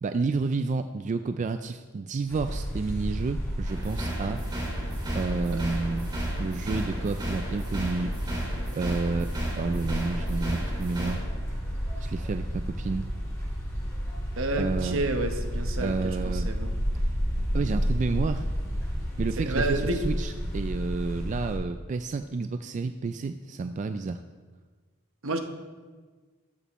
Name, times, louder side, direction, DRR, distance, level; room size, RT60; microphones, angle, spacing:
voice 1, 0.0-4.4 5.1-6.1 6.4-8.1 8.7-11.3 12.0-13.1 14.6-15.0 15.8-16.5 17.5-18.5 19.2-24.2, right 4 dB, 35° right, 9 dB, 0.3 m, -30 dB
sound 1, 2.3-21.6, equal, 15° left, 2.9 m, -31 dB
sound 2, 3.7-11.2, right 1 dB, 20° right, 2.2 m, -35 dB
voice 2, 14.4-15.9 16.4-16.7 19.5-20.0 25.2-25.4, right 2 dB, 75° right, 6 dB, 0.9 m, -29 dB
13.5 x 8.5 x 3.0 m, 1.4 s
head